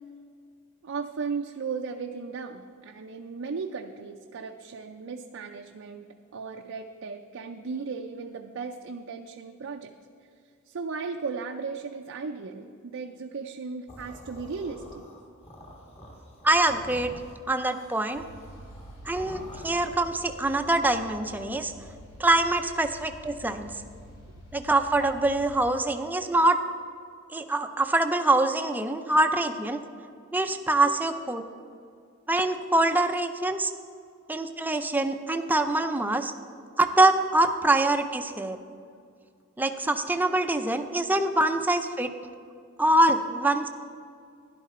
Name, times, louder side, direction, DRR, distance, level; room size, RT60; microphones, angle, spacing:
voice 1, 0.8-9.9 10.7-15.0 26.0-26.1 30.9-31.0, right 5 dB, 65° right, 3 dB, 0.5 m, -36 dB
sound 1, 13.9-20.2, equal, 30° left, 1.8 m, -47 dB
voice 2, 16.4-17.1 17.5-18.2 19.1-21.7 22.2-23.7 24.5-26.6 27.3-29.8 30.3-31.4 32.3-33.7 34.3-36.3 36.8-38.6 39.6-42.1 42.8-43.7, right 2 dB, 10° right, 7 dB, 0.5 m, -24 dB
sound 2, 18.1-25.6, equal, 75° left, 3.1 m, -48 dB
12.0 x 11.0 x 4.2 m, 2.3 s
head